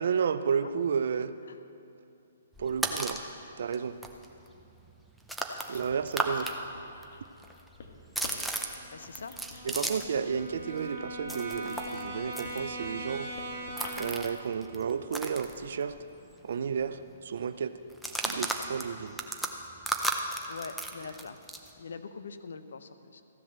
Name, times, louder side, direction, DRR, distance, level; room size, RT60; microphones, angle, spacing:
voice 1, 0.0-1.3 2.6-3.2 3.6-4.0 5.7-6.6 9.6-13.3 14.0-16.0 16.4-17.7 18.2-19.2, right 6 dB, 65° right, 12 dB, 0.6 m, -32 dB
sound 1, 2.5-3.3 3.7-3.8 4.0-6.5 6.8-10.2 10.5-16.1 16.4-16.5 16.8-17.1 17.9-21.7, right 1 dB, ahead, 0.7 m, -35 dB
Writing, 5.7-14.4, left 3 dB, 60° left, 1.4 m, -50 dB
Brass instrument, 8.8-14.3, right 1 dB, 40° right, 2.3 m, -40 dB
voice 2, 8.9-9.4 9.7-9.9 20.3-21.4 21.8-23.2, left 5 dB, 80° left, 11 dB, 0.8 m, -44 dB
14.5 x 7.7 x 6.6 m, 2.7 s
hypercardioid pair, 155°, 0 cm